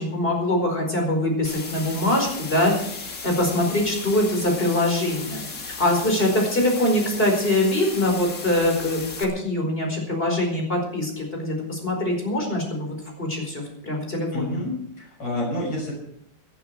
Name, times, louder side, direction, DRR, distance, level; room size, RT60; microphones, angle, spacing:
voice 1, 0.0-14.6, left 1 dB, 30° left, 1 dB, 5.0 m, -23 dB
sound 1, 1.4-9.2, left 4 dB, 50° left, 2.3 m, -36 dB
voice 2, 14.3-15.9, left 1 dB, 75° left, -3 dB, 7.2 m, -29 dB
18.5 x 11.5 x 4.8 m, 0.69 s
omnidirectional pair, 2.0 m